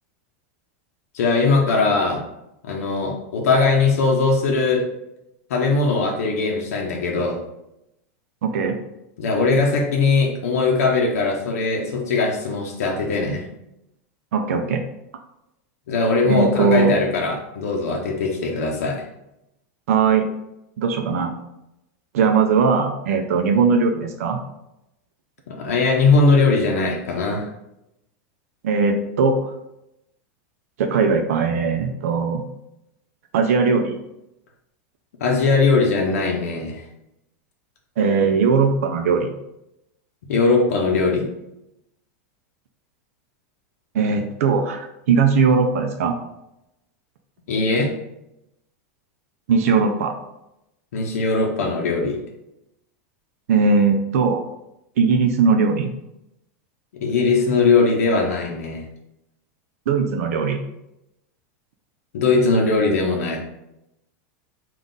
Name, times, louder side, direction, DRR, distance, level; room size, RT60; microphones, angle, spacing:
voice 1, 1.1-2.2 2.6-4.9 5.5-7.4 9.2-13.5 15.9-19.0 25.5-27.5 35.2-36.8 40.3-41.3 47.5-47.9 50.9-52.2 57.0-58.8 62.1-63.4, left 3 dB, 85° left, 0 dB, 0.7 m, -20 dB
voice 2, 8.4-8.8 14.3-14.8 16.2-17.0 19.9-20.3 20.8-21.3 22.1-24.4 28.6-29.5 30.8-32.4 33.3-34.0 38.0-39.3 43.9-46.2 49.5-50.2 53.5-54.4 55.0-55.9 59.9-60.6, right 5 dB, 80° right, 4 dB, 0.5 m, -19 dB
3.9 x 2.4 x 3.7 m, 0.86 s
supercardioid pair, 175°, 8 cm